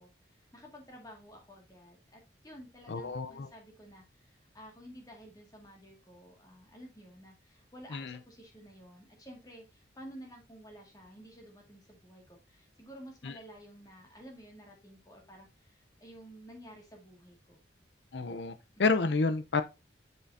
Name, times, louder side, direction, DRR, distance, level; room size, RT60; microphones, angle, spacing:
voice 1, 0.0-17.6, equal, 20° left, 2.0 m, -52 dB
voice 2, 2.9-3.5 7.9-8.2 13.2-13.3 18.1-19.6, left 4 dB, 70° left, 0.6 m, -30 dB
7.2 x 6.8 x 2.7 m
head